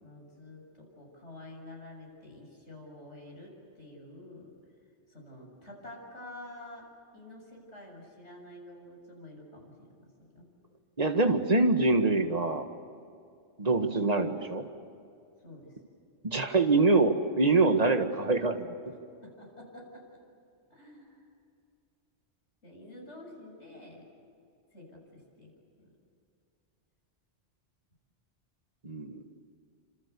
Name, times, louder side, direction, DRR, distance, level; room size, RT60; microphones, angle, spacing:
voice 1, 0.0-4.5 5.1-6.9 7.1-10.5 15.4-15.7 19.2-20.1 20.7-21.3 22.6-24.0 24.7-25.5 25.8-25.9, left 1 dB, 90° left, -1 dB, 7.6 m, -49 dB
voice 2, 11.0-12.7 13.6-14.6 16.2-18.7 28.8-29.2, right 3 dB, 35° right, 5 dB, 1.9 m, -25 dB
28.5 x 27.0 x 7.0 m, 2.4 s
omnidirectional pair, 1.2 m